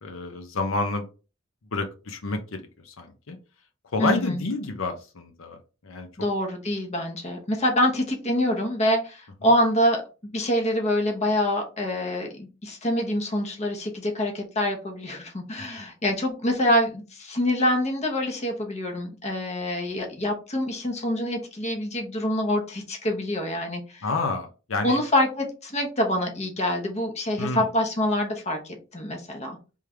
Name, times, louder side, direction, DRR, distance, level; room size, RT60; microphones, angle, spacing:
voice 1, 0.0-1.0 1.7-3.4 3.9-6.1 24.0-25.0 27.4-27.7, left 3 dB, 85° left, 5 dB, 0.7 m, -29 dB
voice 2, 4.0-4.4 6.2-10.0 10.3-24.0 24.8-29.6, left 1 dB, 35° left, 2 dB, 0.9 m, -26 dB
3.6 x 3.3 x 3.3 m, 0.33 s
head